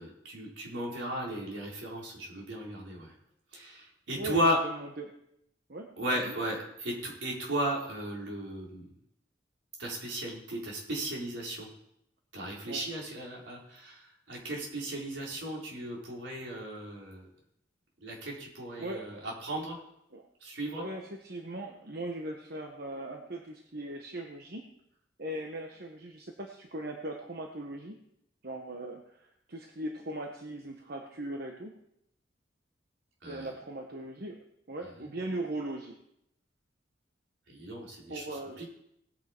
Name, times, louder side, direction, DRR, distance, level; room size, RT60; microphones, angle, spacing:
voice 1, 0.0-3.1 3.5-4.6 6.0-8.9 9.8-11.7 12.3-17.3 18.0-19.8 20.4-20.8 33.2-33.5 35.0-35.1 37.5-38.2 38.6-38.7, equal, 80° right, -3 dB, 4.2 m, -35 dB
voice 2, 4.2-5.1 5.7-6.3 12.7-12.8 18.8-19.2 20.1-20.3 20.8-24.6 25.2-28.0 28.4-31.7 33.3-36.0 38.1-38.7, right 1 dB, 55° right, 3 dB, 1.1 m, -39 dB
18.5 x 9.2 x 4.5 m, 0.78 s
head